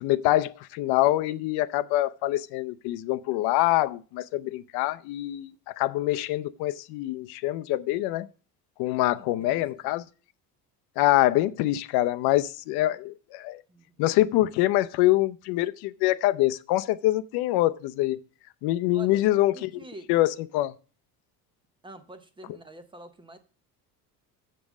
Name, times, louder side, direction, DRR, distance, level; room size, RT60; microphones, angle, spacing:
voice 1, 0.0-5.5 5.8-8.3 8.8-10.0 11.0-13.6 14.0-18.2 18.6-19.7 20.1-20.7, left 16 dB, 70° left, 0.6 m, -25 dB
voice 2, 9.2-10.0 13.7-14.0 18.9-19.2 19.5-20.1 21.8-23.4, right 2 dB, 15° right, 0.6 m, -47 dB
7.7 x 5.3 x 7.1 m
cardioid pair, 160°, 39 cm